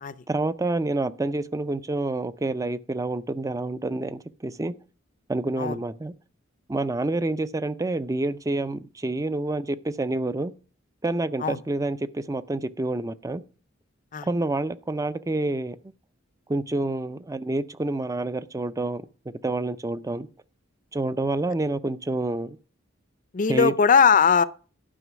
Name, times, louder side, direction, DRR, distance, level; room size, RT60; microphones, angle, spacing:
voice 1, 0.3-4.7 5.3-6.1 6.7-10.5 11.0-13.4 14.2-15.8 16.5-19.0 19.4-20.3 20.9-22.6 23.5-23.7, right 2 dB, 15° right, 0.5 m, -28 dB
voice 2, 23.3-24.4, left 6 dB, 40° left, 0.5 m, -19 dB
11.0 x 5.4 x 6.0 m
head